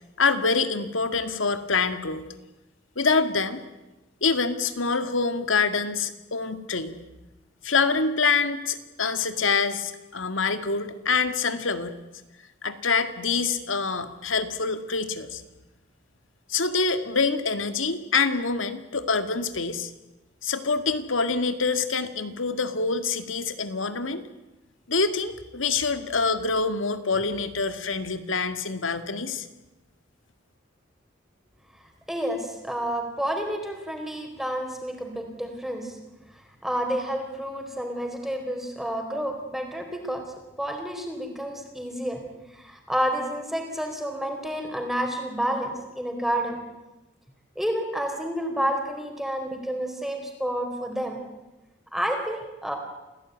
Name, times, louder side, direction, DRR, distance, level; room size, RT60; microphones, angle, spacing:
voice 1, 0.2-2.2 3.0-3.6 4.2-7.0 7.6-12.0 12.6-15.4 16.5-19.9 20.4-24.2 24.9-29.5, left 4 dB, 90° left, 9 dB, 2.0 m, -26 dB
voice 2, 32.1-36.0 36.6-40.2 40.6-42.2 42.5-46.6 47.6-51.2 51.9-52.8, equal, ahead, 3 dB, 4.1 m, -29 dB
28.5 x 17.0 x 9.3 m, 1.0 s
head